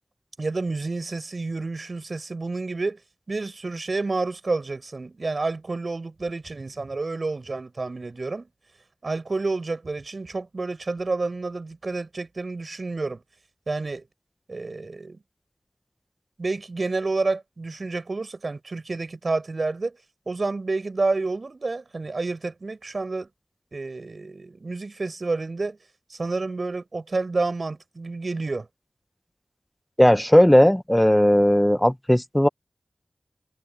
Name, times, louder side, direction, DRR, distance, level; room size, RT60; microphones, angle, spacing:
voice 1, 0.4-3.0 3.3-8.5 9.0-13.2 13.7-14.0 14.5-15.2 16.4-20.0 20.3-23.3 23.7-25.8 26.1-28.7, right 3 dB, 55° right, 7.1 m, -29 dB
voice 2, 30.0-32.5, equal, 10° left, 1.1 m, -17 dB
wide cardioid pair, 65°, 0 cm